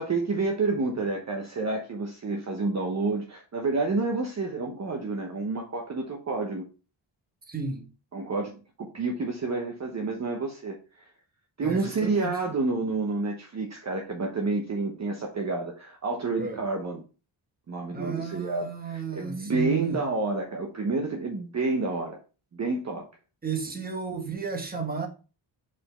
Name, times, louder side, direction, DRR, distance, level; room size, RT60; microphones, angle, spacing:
voice 1, 0.0-6.6 8.1-8.5 8.8-10.8 11.6-17.0 17.7-22.2 22.5-23.1, right 3 dB, 35° right, 1.0 m, -29 dB
voice 2, 7.5-7.9 11.6-12.3 16.4-16.6 17.9-20.0 23.4-25.1, right 5 dB, 20° right, 1.3 m, -33 dB
5.0 x 4.5 x 4.3 m
wide cardioid pair, 125°, 46 cm